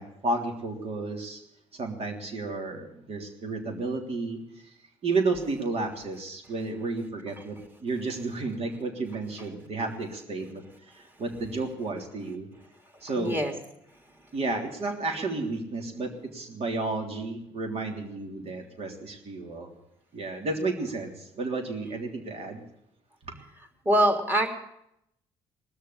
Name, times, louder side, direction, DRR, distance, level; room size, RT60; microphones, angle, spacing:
voice 1, 0.0-1.4 1.7-4.7 5.0-12.5 13.0-13.4 14.3-19.7 20.1-22.6 23.3-23.4, right 3 dB, 50° right, 2 dB, 3.3 m, -32 dB
voice 2, 13.2-13.5 23.8-24.5, right 1 dB, 15° right, 2 dB, 3.3 m, -23 dB
19.5 x 6.7 x 9.9 m, 0.80 s
supercardioid pair, 65°, 13 cm